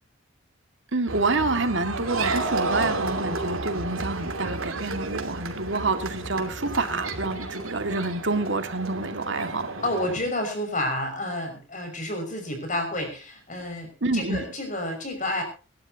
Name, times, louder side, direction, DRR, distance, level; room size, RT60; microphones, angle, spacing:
voice 1, 0.9-9.7 14.0-14.5, right 3 dB, 60° right, 7 dB, 2.1 m, -28 dB
sound 1, 1.1-10.2, right 3 dB, 90° right, 2.8 m, -31 dB
voice 2, 9.8-15.4, left 1 dB, 35° left, 5 dB, 6.1 m, -30 dB
26.0 x 12.0 x 2.9 m, 0.35 s
head